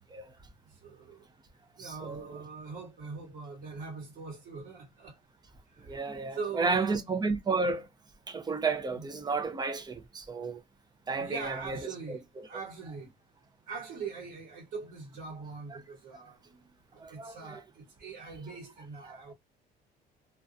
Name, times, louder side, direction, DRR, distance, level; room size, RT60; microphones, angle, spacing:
voice 1, 0.7-1.3 1.8-5.2 5.7-7.0 8.9-9.0 11.1-13.1 13.7-19.3, right 5 dB, 70° right, 1.3 m, -42 dB
voice 2, 1.8-2.4 5.8-7.9 8.3-10.6 11.1-12.2 17.0-17.6 19.1-19.3, right 4 dB, 25° right, 0.6 m, -32 dB
2.4 x 2.2 x 2.5 m
cardioid pair, 110°, 17 cm